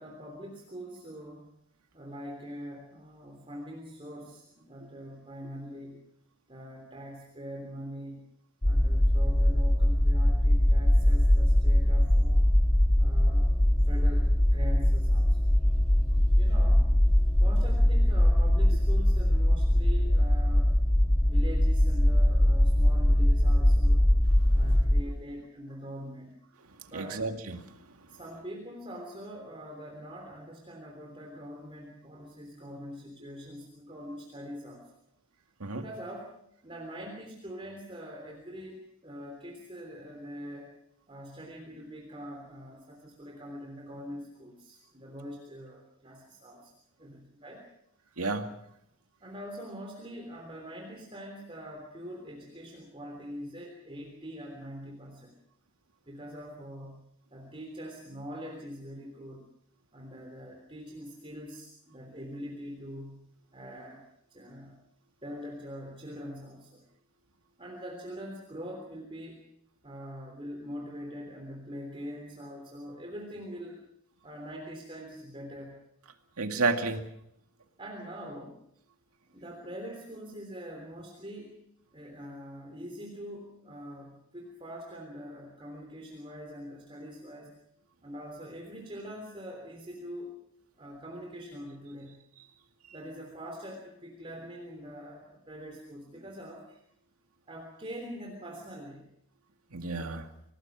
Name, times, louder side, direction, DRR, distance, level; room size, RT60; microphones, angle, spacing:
voice 1, 0.0-1.5 1.9-6.0 6.5-8.3 8.6-12.5 13.0-13.5 13.8-15.4 16.4-16.9 17.4-20.7 21.2-24.0 24.5-26.4 26.9-27.2 28.1-35.0 35.7-36.3 36.6-40.7 41.1-46.7 47.0-47.6 49.2-55.3 56.1-59.5 59.9-64.8 65.2-66.8 67.6-69.4 69.8-73.8 74.2-75.8 77.8-78.6 79.3-81.5 81.9-87.6 88.0-90.3 90.8-92.3 92.9-96.8 97.5-99.1, equal, 25° right, 1 dB, 3.4 m, -43 dB
sound 1, 8.6-25.0, left 1 dB, 15° left, 0.8 m, -22 dB
voice 2, 26.9-27.6 35.6-35.8 48.2-48.5 76.4-77.1 99.7-100.3, right 3 dB, 90° right, 5 dB, 2.3 m, -30 dB
26.5 x 18.5 x 6.1 m, 0.76 s
head